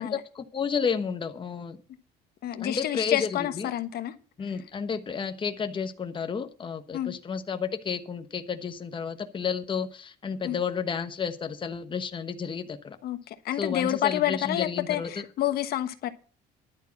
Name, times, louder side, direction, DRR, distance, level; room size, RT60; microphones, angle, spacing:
voice 1, 0.0-1.8 2.6-3.7 4.4-13.0 13.6-15.2, left 6 dB, 30° left, 1.2 m, -31 dB
voice 2, 2.4-4.1 6.9-7.1 10.4-10.6 13.0-16.1, left 13 dB, 70° left, 1.2 m, -29 dB
11.0 x 8.2 x 5.9 m
cardioid pair, 110°, 17 cm